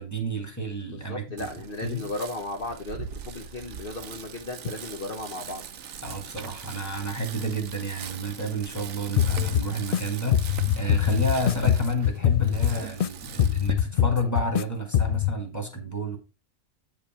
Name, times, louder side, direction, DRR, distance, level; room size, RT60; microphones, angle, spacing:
voice 1, 0.0-1.5 1.8-2.0 6.0-16.2, equal, 10° left, 2.0 m, -30 dB
voice 2, 0.9-5.6, left 2 dB, 45° left, 1.2 m, -35 dB
Bicycle, 1.4-13.7, right 7 dB, 75° right, 1.2 m, -40 dB
sound 1, 9.2-10.0 10.3-13.1 13.4-14.6 14.9-15.3, left 10 dB, 70° left, 0.5 m, -23 dB
8.8 x 5.5 x 4.4 m
omnidirectional pair, 1.4 m